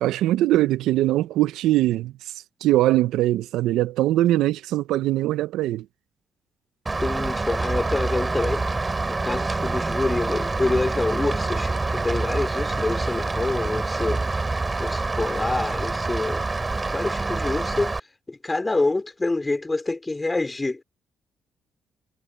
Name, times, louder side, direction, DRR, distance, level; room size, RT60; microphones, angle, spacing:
voice 1, 0.0-2.1 2.6-5.9, right 15 dB, 90° right, 0.5 m, -21 dB
Rain, 6.9-18.0, right 3 dB, 25° right, 3.9 m, -26 dB
voice 2, 7.0-8.6 9.1-14.2 14.8-16.4 16.9-17.9 18.3-20.8, left 2 dB, 20° left, 4.1 m, -26 dB
cardioid pair, 90°, 0 cm